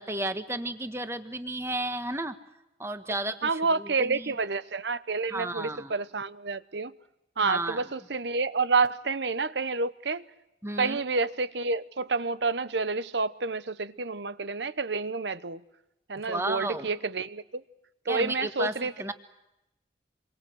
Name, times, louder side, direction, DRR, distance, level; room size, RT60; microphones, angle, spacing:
voice 1, 0.0-2.3 2.8-4.3 5.3-5.9 7.4-7.9 10.6-11.0 16.1-16.9 18.1-19.1, right 2 dB, 15° right, 1.4 m, -33 dB
voice 2, 3.4-6.9 7.4-10.2 10.8-15.6 16.1-17.4 18.1-19.1, right 4 dB, 75° right, 1.0 m, -29 dB
27.5 x 23.0 x 7.9 m
head